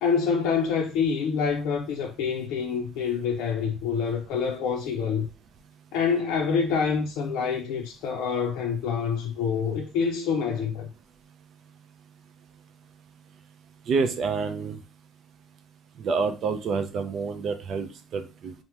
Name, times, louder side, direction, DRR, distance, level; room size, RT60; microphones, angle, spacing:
voice 1, 0.0-5.3 5.9-10.9, left 6 dB, 80° left, 0.4 m, -26 dB
voice 2, 13.9-14.8 16.0-18.5, right 5 dB, 45° right, 0.4 m, -28 dB
2.9 x 2.0 x 3.4 m
cardioid pair, 150°, 0 cm